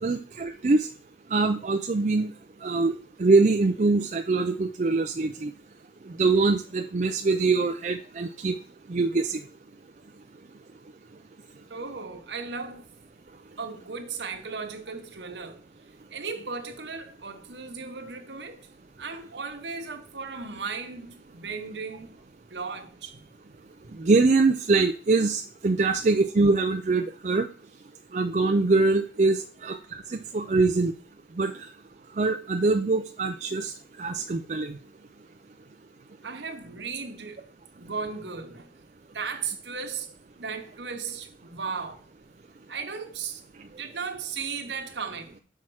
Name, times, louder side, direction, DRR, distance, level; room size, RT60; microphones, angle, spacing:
voice 1, 0.0-0.9 1.3-2.3 2.6-2.9 3.2-5.5 6.2-8.6 8.9-9.4 24.0-27.5 28.1-29.8 30.1-30.9 31.4-31.5 32.2-33.7 34.0-34.8, right 3 dB, 45° right, 0.4 m, -23 dB
voice 2, 11.7-12.9 13.6-15.6 16.1-18.7 19.0-22.1 22.5-23.2 25.9-26.0 30.1-30.6 36.2-37.5 37.7-38.7 39.1-42.1 42.7-43.4 43.8-45.4, right 5 dB, 85° right, 1.1 m, -36 dB
5.7 x 4.5 x 6.2 m
head